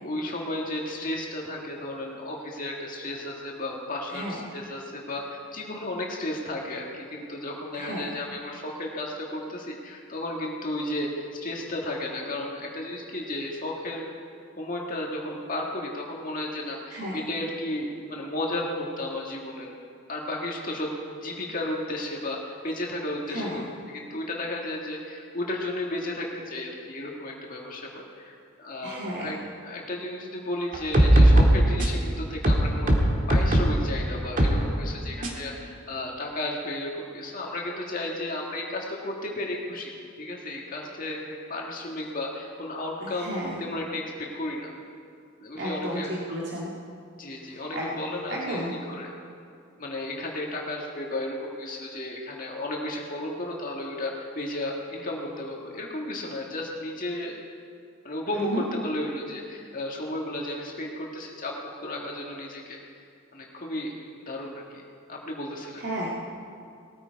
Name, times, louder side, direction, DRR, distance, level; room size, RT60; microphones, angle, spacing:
voice 1, 0.0-14.1 14.6-19.8 20.1-29.4 29.6-44.7 45.4-46.2 47.2-49.1 49.8-57.4 58.0-62.8 63.3-64.8 65.1-65.8, left 1 dB, 45° left, -1 dB, 1.7 m, -33 dB
voice 2, 4.1-4.4 7.7-8.1 16.9-17.2 23.3-23.6 28.8-29.3 43.0-43.6 45.6-46.7 47.4-47.9 48.3-48.7 58.3-58.6 65.8-66.3, equal, 55° right, -5 dB, 2.1 m, -33 dB
sound 1, 30.7-32.0 32.4-33.8 34.4-34.6 35.2-35.3, right 1 dB, 40° right, 1.9 m, -19 dB
19.5 x 14.0 x 4.7 m, 2.4 s
head